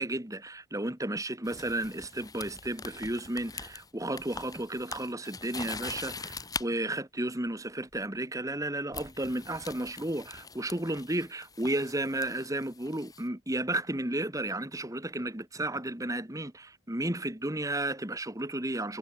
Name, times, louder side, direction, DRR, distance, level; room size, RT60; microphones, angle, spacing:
voice 1, 0.0-19.0, right 1 dB, 15° right, 2.4 m, -33 dB
sound 1, 1.4-6.7 7.9-8.2 8.9-13.2, left 4 dB, 20° left, 4.0 m, -43 dB
head